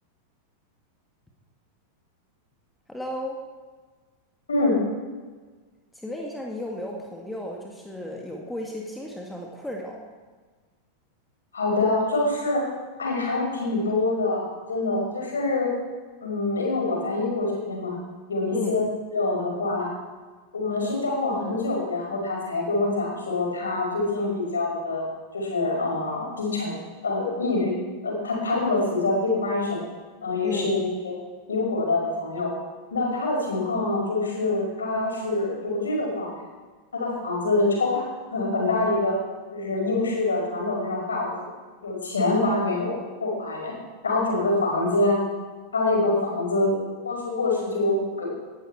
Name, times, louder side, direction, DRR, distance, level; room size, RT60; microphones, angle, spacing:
voice 1, 2.9-3.4 5.9-10.0 18.5-18.8 30.4-30.8, left 1 dB, 5° left, -1 dB, 1.9 m, -34 dB
voice 2, 4.5-4.8 11.5-12.7 13.0-15.7 16.2-18.0 18.3-18.8 19.1-19.9 20.5-25.0 25.3-27.8 28.0-29.8 30.2-30.8 31.0-31.2 31.5-32.5 32.9-36.3 36.9-38.0 38.3-39.2 39.5-41.3 41.8-43.7 44.0-45.2 45.7-46.7 47.0-48.3, left 2 dB, 70° left, -1 dB, 5.4 m, -25 dB
18.5 x 11.5 x 4.6 m, 1.4 s
figure-of-eight pair, 90°, 0 cm